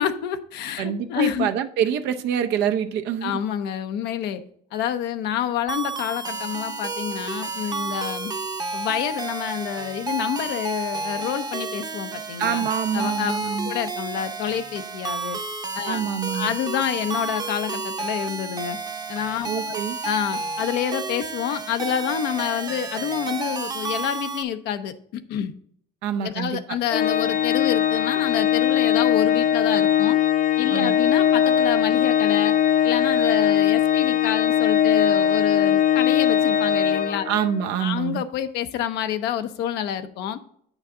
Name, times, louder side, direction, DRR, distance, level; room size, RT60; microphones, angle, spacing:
voice 1, 0.0-1.5 3.2-4.4 4.7-8.3 8.7-12.7 12.9-13.3 13.6-15.4 15.7-16.0 16.3-18.8 19.1-19.8 20.0-25.5 26.2-30.2 30.6-32.5 32.8-37.3 37.8-40.4, left 10 dB, 85° left, 0.8 m, -28 dB
voice 2, 0.8-3.4 12.4-13.7 15.9-16.5 19.4-20.0 26.0-26.8 30.7-30.9 37.2-38.2, right 8 dB, 85° right, 0.7 m, -26 dB
sound 1, 5.7-24.4, right 4 dB, 25° right, 0.7 m, -31 dB
Organ, 26.9-37.7, left 9 dB, 50° left, 0.6 m, -20 dB
8.6 x 6.3 x 3.7 m
cardioid pair, 110°, 17 cm